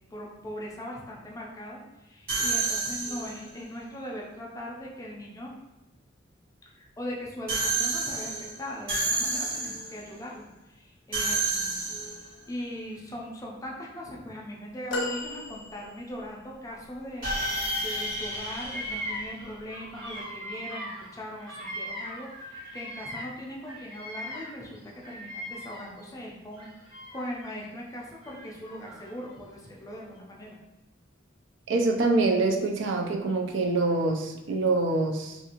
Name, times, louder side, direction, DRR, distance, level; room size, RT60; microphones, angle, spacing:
voice 1, 0.1-5.5 6.6-12.2 12.5-30.6, equal, 15° left, -3 dB, 0.4 m, -40 dB
sound 1, 2.3-3.5 7.5-10.0 11.1-12.4 17.2-19.8, right 3 dB, 50° right, 1.1 m, -30 dB
sound 2, 14.9-16.3 17.1-17.2, left 2 dB, 90° left, 0.5 m, -34 dB
Bird vocalization bird call bird song, 17.3-18.0 18.3-23.4 23.6-26.1 26.5-27.5 28.2-29.3, equal, 25° right, 0.6 m, -40 dB
voice 2, 31.7-35.4, right 3 dB, 70° right, 2 dB, 0.4 m, -25 dB
2.5 x 2.4 x 2.8 m, 0.98 s
head